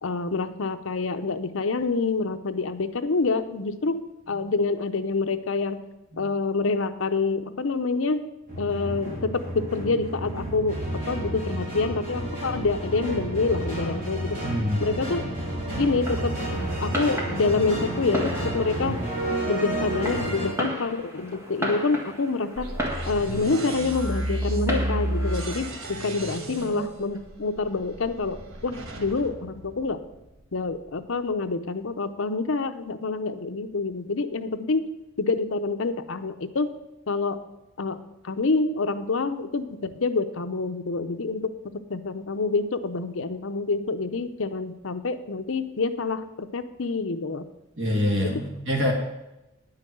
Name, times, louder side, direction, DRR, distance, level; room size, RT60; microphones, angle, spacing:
voice 1, 0.0-5.8 6.2-8.2 8.6-10.8 11.1-14.4 14.8-15.2 15.8-16.3 16.8-19.0 19.5-22.7 23.1-28.4 28.6-30.0 30.5-34.9 35.2-36.7 37.1-37.4 37.8-38.0 38.2-47.4, left 3 dB, 75° left, 10 dB, 0.7 m, -27 dB
sound 1, 8.5-20.5, right 1 dB, 40° right, 4.0 m, -31 dB
voice 2, 14.4-14.8 47.8-48.9, left 1 dB, 60° right, 0 dB, 2.5 m, -25 dB
Fireworks, 15.9-25.9, equal, 10° right, 1.6 m, -35 dB
sound 2, 22.6-30.4, right 1 dB, 85° right, 1.3 m, -32 dB
9.9 x 5.7 x 7.8 m, 0.97 s
head